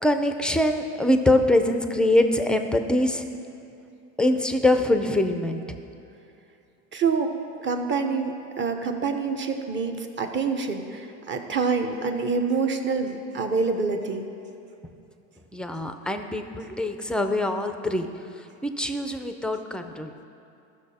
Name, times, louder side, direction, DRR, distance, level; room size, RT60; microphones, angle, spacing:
voice 1, 0.0-3.2 4.2-5.8 15.5-18.1 18.6-20.1, left 1 dB, ahead, 6 dB, 0.5 m, -23 dB
voice 2, 6.9-7.3 7.6-14.3, right 4 dB, 30° right, 5 dB, 0.9 m, -26 dB
14.5 x 6.3 x 4.2 m, 2.7 s
supercardioid pair, 105°, 39 cm